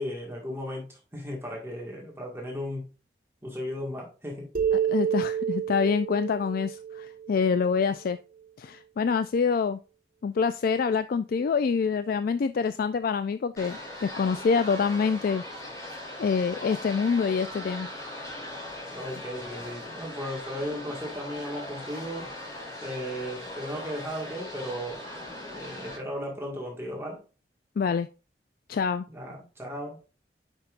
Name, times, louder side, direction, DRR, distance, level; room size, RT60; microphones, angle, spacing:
voice 1, 0.0-2.9 3.4-4.5 18.9-22.3 22.8-25.0 25.5-27.2 29.1-30.0, equal, 15° right, 1.7 m, -36 dB
sound 1, 4.5-8.1, right 8 dB, 55° right, 1.4 m, -29 dB
voice 2, 4.9-8.2 8.6-9.8 10.2-15.4 16.2-17.9 27.8-28.1 28.7-29.1, left 5 dB, 55° left, 0.3 m, -26 dB
sound 2, 13.6-26.0, left 1 dB, 20° left, 2.8 m, -39 dB
8.8 x 5.4 x 2.5 m
head